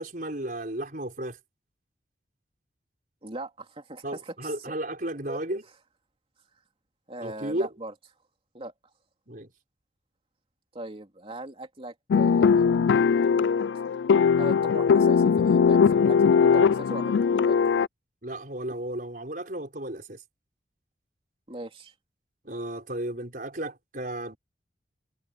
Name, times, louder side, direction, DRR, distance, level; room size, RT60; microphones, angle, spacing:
voice 1, 0.0-1.4 4.0-5.6 7.2-7.7 9.3-9.5 18.2-20.2 22.4-24.4, right 1 dB, 50° right, 5.3 m, -34 dB
voice 2, 3.2-4.7 5.3-5.4 7.1-7.9 8.5-8.7 10.7-12.9 13.7-13.9 14.4-17.8 21.5-21.9, right 1 dB, 30° right, 3.4 m, -39 dB
sound 1, 12.1-17.9, left 6 dB, 85° left, 0.3 m, -20 dB
head